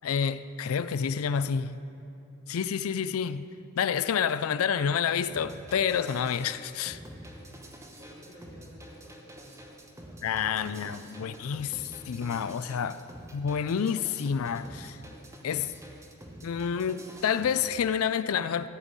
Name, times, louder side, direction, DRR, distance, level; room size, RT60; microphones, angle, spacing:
voice 1, 0.0-1.8 2.5-3.5 3.8-7.0 10.2-13.0 13.3-15.0 15.4-15.7 16.4-18.7, left 7 dB, 80° left, 0.4 m, -29 dB
sound 1, 5.3-17.7, right 1 dB, 15° right, 1.0 m, -47 dB
voice 2, 7.4-9.7 10.0-10.8 11.2-11.3, equal, 35° right, 2.6 m, -54 dB
15.0 x 5.3 x 8.8 m
head